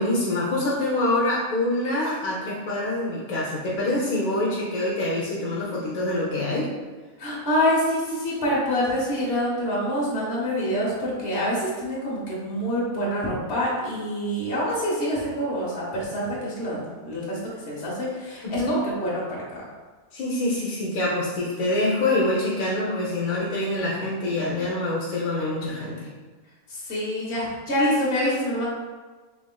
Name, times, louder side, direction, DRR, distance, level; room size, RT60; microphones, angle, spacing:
voice 1, 0.0-6.7 18.4-18.8 20.1-26.1, left 1 dB, 80° left, -5 dB, 1.2 m, -25 dB
voice 2, 7.2-17.4 17.6-19.3 26.7-28.7, equal, 50° left, -6 dB, 1.4 m, -26 dB
4.9 x 3.5 x 2.2 m, 1.4 s
omnidirectional pair, 1.5 m